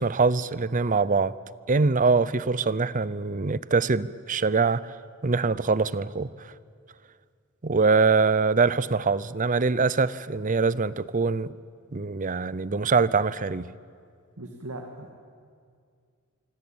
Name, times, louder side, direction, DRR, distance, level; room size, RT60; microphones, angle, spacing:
voice 1, 0.0-1.4 1.7-4.9 5.2-6.3 7.6-11.5 11.9-13.7, right 4 dB, 35° right, 18 dB, 0.6 m, -23 dB
voice 2, 14.4-15.1, right 1 dB, 85° right, 2 dB, 2.2 m, -39 dB
26.0 x 25.0 x 8.8 m, 2.2 s
head